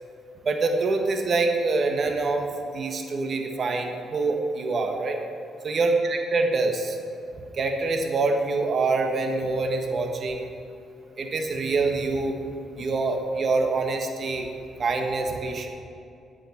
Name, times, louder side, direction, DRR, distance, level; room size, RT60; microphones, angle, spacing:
voice 1, 0.4-2.5 2.7-5.2 5.6-7.0 7.5-10.5 11.2-12.3 12.8-14.5 14.8-15.7, right 3 dB, 50° right, 3 dB, 1.4 m, -25 dB
8.8 x 8.8 x 5.9 m, 2.6 s
cardioid pair, 90°, 0 cm